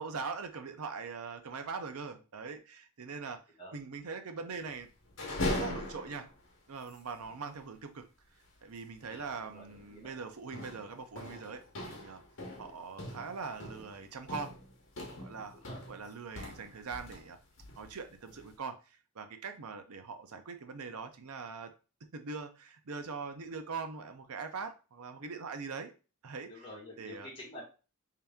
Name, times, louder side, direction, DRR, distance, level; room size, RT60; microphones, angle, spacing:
voice 1, 0.0-3.4 3.7-4.9 5.3-6.3 6.7-8.0 8.6-12.2 12.6-14.5 15.2-15.6 15.9-17.4 17.8-21.7 22.1-25.9 26.2-26.5 27.0-27.3, right 5 dB, 80° right, 0.6 m, -42 dB
sound 1, 5.0-6.5 6.9-7.0 7.2-7.4 9.1-9.3 9.7-10.0 10.5-17.3 17.6-18.5, left 1 dB, 60° left, 1.0 m, -40 dB
voice 2, 9.0-10.1 15.5-15.8 26.5-27.6, left 1 dB, 25° left, 1.3 m, -49 dB
3.3 x 2.8 x 3.5 m
head